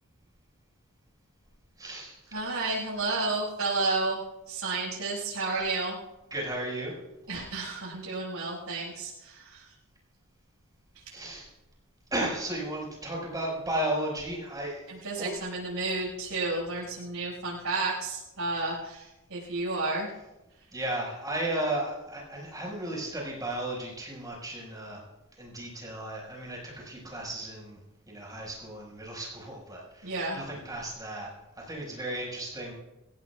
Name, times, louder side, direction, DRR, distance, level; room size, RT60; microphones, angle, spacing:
voice 1, 1.8-2.4 5.6-5.7 6.3-6.9 11.1-11.5 12.1-14.9 15.2-15.3 20.7-25.0 25.4-27.8 28.1-31.3 31.6-32.7, right 1 dB, 15° right, -3 dB, 5.5 m, -34 dB
voice 2, 2.3-4.2 4.5-6.0 7.3-9.7 10.9-11.0 14.9-20.1 30.0-30.4, right 3 dB, 80° right, -6 dB, 6.0 m, -31 dB
25.5 x 16.5 x 2.4 m, 0.98 s
head